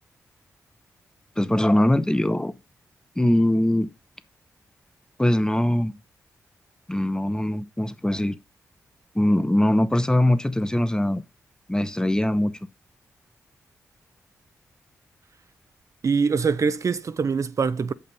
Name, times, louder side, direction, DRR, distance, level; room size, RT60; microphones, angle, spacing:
voice 1, 1.4-2.5 3.2-3.9 5.2-6.0 6.9-8.4 9.1-11.2 11.7-12.6, left 1 dB, 10° left, 0.8 m, -21 dB
voice 2, 16.0-17.9, right 5 dB, 55° right, 0.5 m, -23 dB
6.7 x 5.6 x 5.3 m
supercardioid pair, 40°, 7 cm